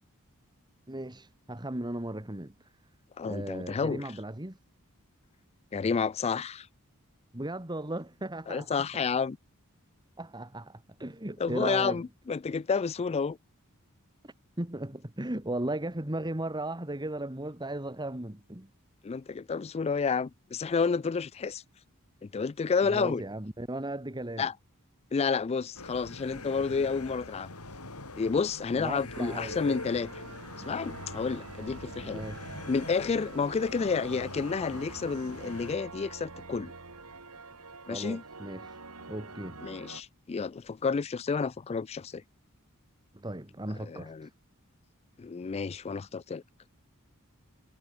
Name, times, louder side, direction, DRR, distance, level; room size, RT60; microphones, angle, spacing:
voice 1, 0.9-2.7 3.2-4.6 7.3-8.7 10.2-12.0 14.6-18.7 22.8-24.5 28.7-29.6 32.0-32.6 37.9-38.8 39.1-39.6 43.1-44.3, right 1 dB, 20° right, 2.2 m, -36 dB
voice 2, 3.2-4.0 5.7-6.7 8.5-9.4 11.4-13.4 19.0-21.6 22.2-23.2 24.4-24.5 25.1-27.5 28.1-30.1 30.6-32.2 32.7-36.7 37.9-38.2 39.6-42.2 43.8-44.3 45.2-46.4, left 5 dB, 30° left, 0.3 m, -30 dB
sound 1, 25.8-35.8, left 3 dB, 80° left, 6.2 m, -43 dB
sound 2, 29.1-40.0, right 3 dB, 75° right, 4.2 m, -46 dB
head